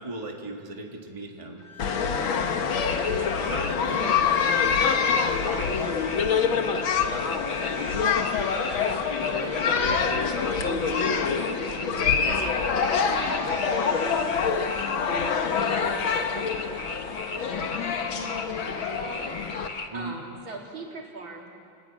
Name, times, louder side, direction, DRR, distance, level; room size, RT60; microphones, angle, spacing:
voice 1, 0.0-1.6 3.4-4.7 19.9-20.2, right 2 dB, 15° right, 1 dB, 2.0 m, -37 dB
sound 1, 1.6-17.6, left 3 dB, 55° left, 5.9 m, -41 dB
sound 2, 1.8-19.7, left 6 dB, 80° left, 2.1 m, -26 dB
voice 2, 2.0-2.6 2.8-3.3 5.1-8.7 8.9-12.6 13.1-16.5 17.0-19.7 19.9-21.5, right 2 dB, 75° right, -1 dB, 4.0 m, -43 dB
sound 3, 2.8-19.9, left 3 dB, 30° left, 1.1 m, -38 dB
27.5 x 20.5 x 8.7 m, 2.5 s
omnidirectional pair, 2.1 m